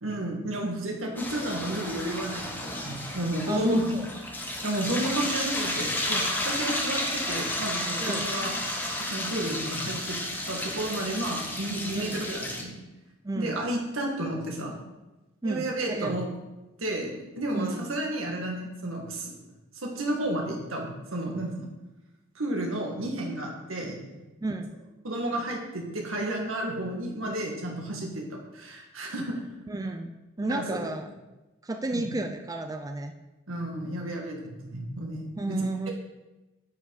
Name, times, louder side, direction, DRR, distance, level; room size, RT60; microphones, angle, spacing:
voice 1, 0.0-4.0 4.6-8.5 9.0-10.2 10.5-12.8 13.4-14.8 15.4-16.2 16.8-19.3 19.8-21.7 22.4-24.0 25.0-29.4 30.4-30.9 31.9-32.1 33.5-35.6, right 1 dB, 90° right, 0 dB, 2.0 m, -32 dB
sound 1, 1.2-12.6, left 1 dB, 10° left, 1.1 m, -32 dB
voice 2, 3.5-4.1 8.0-8.3 11.9-12.2 13.2-13.6 15.4-16.1 17.5-17.9 24.4-24.7 29.7-31.1 31.6-33.1 35.4-35.9, right 2 dB, 20° right, 6 dB, 0.4 m, -31 dB
9.1 x 5.7 x 4.9 m, 1.1 s
head